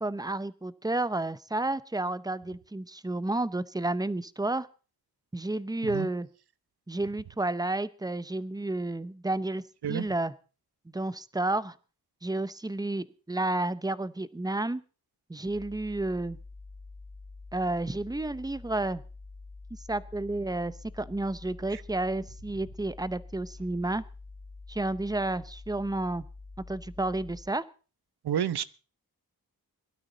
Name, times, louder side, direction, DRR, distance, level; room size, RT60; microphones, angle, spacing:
voice 1, 0.0-4.7 5.3-6.3 6.9-9.6 9.9-10.3 10.9-11.7 12.2-14.8 15.3-16.4 17.5-19.0 19.9-24.0 24.7-26.2 26.7-27.6, right 2 dB, 10° right, 16 dB, 0.7 m, -31 dB
sound 1, 15.5-27.4, left 3 dB, 55° left, 3.2 m, -47 dB
voice 2, 28.2-28.6, right 9 dB, 90° right, 15 dB, 0.9 m, -30 dB
21.5 x 12.5 x 3.9 m, 0.36 s
wide cardioid pair, 110°, 38 cm